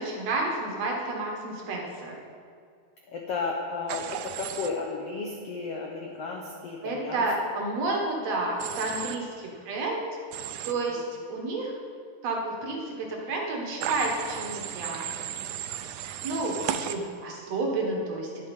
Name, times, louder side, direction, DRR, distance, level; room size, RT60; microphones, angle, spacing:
voice 1, 0.0-2.2 6.8-10.0 10.6-11.0 11.3-11.7 12.2-15.1 16.2-18.5, right 2 dB, 55° right, -1 dB, 2.3 m, -30 dB
voice 2, 3.1-7.2 10.9-11.0 17.7-17.8, left 4 dB, 85° left, 1 dB, 1.3 m, -33 dB
Human voice / Train, 3.9-4.7 8.6-9.2 10.3-10.7 13.8-16.9, right 10 dB, 80° right, 1.8 m, -34 dB
10.5 x 10.5 x 5.4 m, 2.2 s
omnidirectional pair, 4.1 m